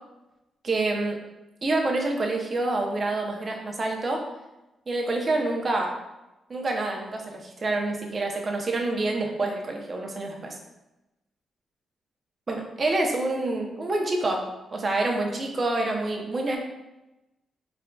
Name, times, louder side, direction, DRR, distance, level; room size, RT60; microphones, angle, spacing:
voice 1, 0.6-1.2 1.6-4.2 4.9-5.9 6.5-10.6 12.5-14.4 14.7-16.6, right 2 dB, 40° right, 1 dB, 0.6 m, -27 dB
3.7 x 3.4 x 2.2 m, 0.99 s
cardioid pair, 85°, 0 cm